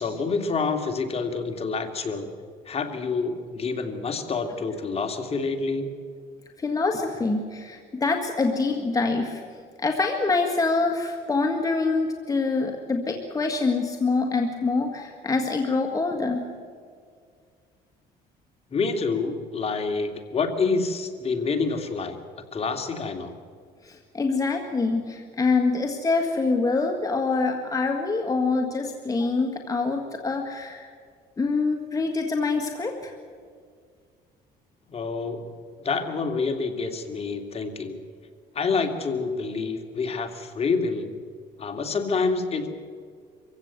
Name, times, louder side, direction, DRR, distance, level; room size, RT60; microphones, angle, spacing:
voice 1, 0.0-2.3 2.7-5.9 18.7-22.2 22.5-23.3 34.9-35.5 35.8-38.0 38.5-41.1 41.6-42.7, left 4 dB, 35° left, 5 dB, 2.5 m, -27 dB
voice 2, 6.6-9.4 9.8-16.4 23.8-30.9 31.4-33.1, left 3 dB, 20° left, 3 dB, 1.9 m, -25 dB
24.5 x 16.0 x 8.1 m, 2.1 s
cardioid pair, 110°, 17 cm